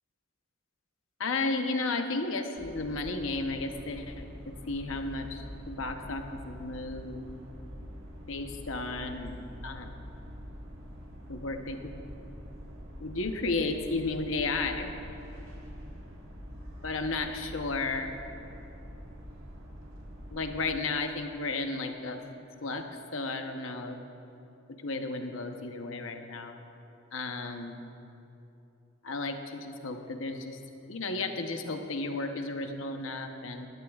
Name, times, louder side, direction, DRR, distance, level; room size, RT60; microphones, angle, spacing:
voice 1, 1.2-7.2 8.3-9.4 9.6-9.9 11.3-11.9 13.0-14.9 16.8-18.1 20.3-22.2 22.6-24.0 24.8-26.6 27.1-27.8 29.0-30.6 30.9-33.7, left 3 dB, 75° left, 5 dB, 0.9 m, -33 dB
sound 1, 2.6-20.7, equal, 80° right, 1.7 m, -45 dB
19.5 x 12.0 x 2.4 m, 2.8 s
head